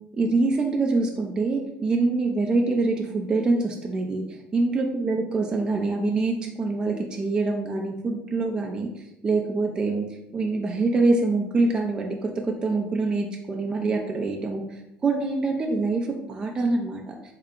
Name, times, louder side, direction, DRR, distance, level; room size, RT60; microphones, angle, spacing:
voice 1, 0.1-8.9 9.2-10.1 10.3-14.6 15.0-17.2, right 3 dB, 20° right, 1 dB, 0.4 m, -25 dB
3.7 x 2.2 x 3.6 m, 0.86 s
cardioid pair, 135°, 4 cm